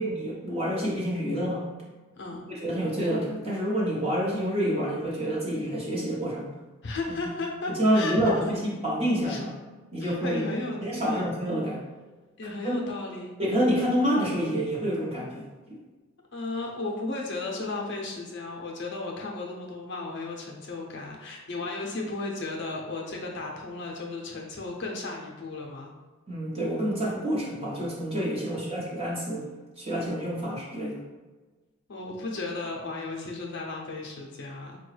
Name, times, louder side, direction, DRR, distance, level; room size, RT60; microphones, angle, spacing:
voice 1, 0.0-1.6 2.6-6.5 7.8-9.5 9.9-10.4 10.8-11.8 12.6-12.8 13.4-15.5 26.3-29.4 29.8-31.0, equal, 25° right, -5 dB, 0.8 m, -27 dB
voice 2, 6.8-8.4 9.2-9.4 10.0-10.8 11.0-11.4 12.4-13.4 16.3-25.9 28.4-28.7 31.9-34.8, left 3 dB, 50° left, -1 dB, 0.6 m, -34 dB
4.7 x 2.2 x 3.2 m, 1.3 s
head